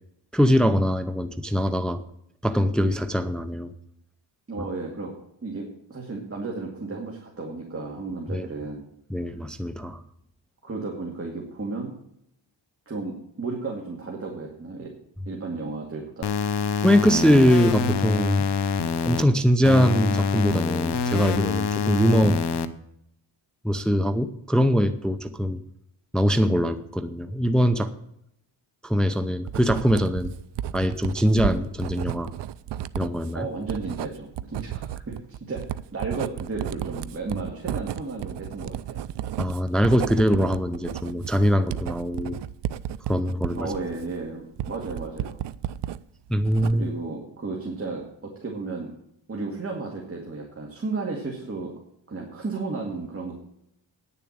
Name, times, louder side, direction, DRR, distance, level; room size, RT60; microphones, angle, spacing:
voice 1, 0.3-2.0 2.4-3.7 8.3-8.5 9.1-10.0 16.8-18.5 19.0-22.4 23.6-25.6 26.1-27.9 28.8-30.3 30.7-32.3 32.9-33.5 39.4-42.4 43.1-43.7 46.3-46.8, equal, ahead, 9 dB, 0.6 m, -22 dB
voice 2, 4.5-5.1 5.4-8.8 10.6-11.9 12.9-14.9 15.3-16.3 33.3-39.0 43.5-45.4 46.7-48.9 49.3-51.7 52.1-53.3, right 3 dB, 30° right, -1 dB, 2.2 m, -33 dB
sound 1, 16.2-19.2 19.6-22.7, left 5 dB, 60° left, 0.9 m, -26 dB
Writing, 29.5-46.0 46.3-47.0, right 11 dB, 60° right, 0.6 m, -33 dB
9.9 x 7.1 x 8.6 m, 0.74 s
wide cardioid pair, 125°, 47 cm